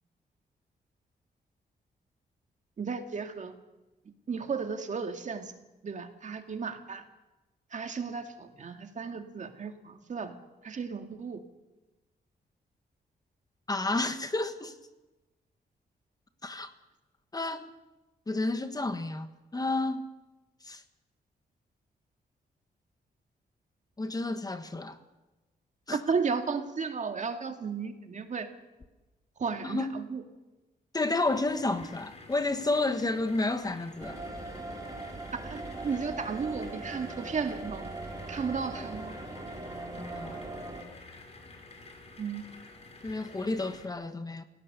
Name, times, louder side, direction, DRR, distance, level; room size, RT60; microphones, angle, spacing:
voice 1, 2.8-3.5 4.3-5.5 5.8-7.0 7.7-10.4 10.6-11.4 25.9-28.5 29.4-30.2 35.3-37.8 38.3-39.2 42.2-42.4, right 5 dB, 45° right, 2.1 m, -34 dB
voice 2, 13.7-14.8 16.4-16.7 17.3-17.7 18.3-19.3 19.5-20.0 20.6-20.8 24.0-25.0 25.9-26.0 29.6-29.9 30.9-34.2 40.0-40.4 43.0-44.4, left 2 dB, 20° left, 1.4 m, -31 dB
sound 1, 31.2-43.9, left 3 dB, 40° left, 4.5 m, -51 dB
sound 2, 34.0-40.8, right 2 dB, 20° right, 3.1 m, -40 dB
28.5 x 17.5 x 6.8 m
wide cardioid pair, 125°, 17 cm